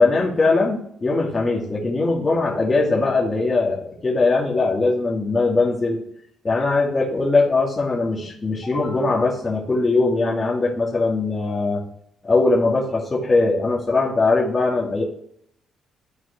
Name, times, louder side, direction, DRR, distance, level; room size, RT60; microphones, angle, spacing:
voice 1, 0.0-6.0 6.4-11.8 12.2-15.0, left 3 dB, 25° left, -4 dB, 2.4 m, -20 dB
12.5 x 4.8 x 3.2 m, 0.70 s
cardioid pair, 90°, 0 cm